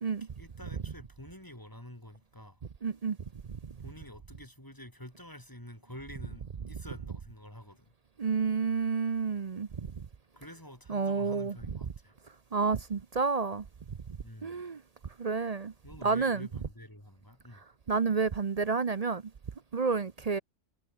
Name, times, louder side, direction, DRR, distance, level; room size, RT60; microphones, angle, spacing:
voice 1, 0.2-2.6 3.8-7.9 10.3-12.2 14.2-14.6 15.8-17.6, left 1 dB, 15° left, 4.1 m, -48 dB
voice 2, 2.8-3.2 8.2-9.9 10.9-11.5 12.5-13.6 14.4-14.8 15.2-15.7 16.0-16.5 17.9-19.2 19.7-20.4, right 5 dB, 40° right, 0.7 m, -29 dB
omnidirectional pair, 1.3 m